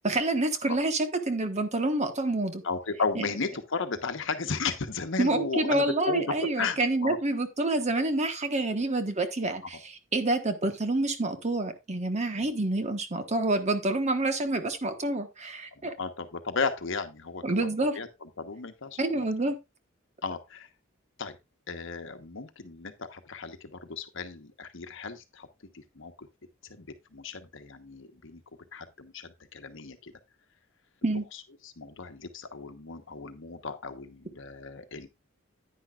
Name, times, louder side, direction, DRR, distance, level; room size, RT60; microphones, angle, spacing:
voice 1, 0.0-2.6 5.2-15.9 17.4-17.9 19.0-19.5 31.0-31.2, right 2 dB, 35° right, 1.3 m, -28 dB
voice 2, 2.6-7.2 12.4-12.5 15.8-17.7 17.9-19.3 20.2-20.7 21.2-21.4 21.7-25.5 25.7-26.3 26.7-26.9 27.1-28.4 28.7-30.1 31.6-35.1, left 4 dB, 65° left, 1.1 m, -34 dB
10.0 x 9.6 x 2.4 m
head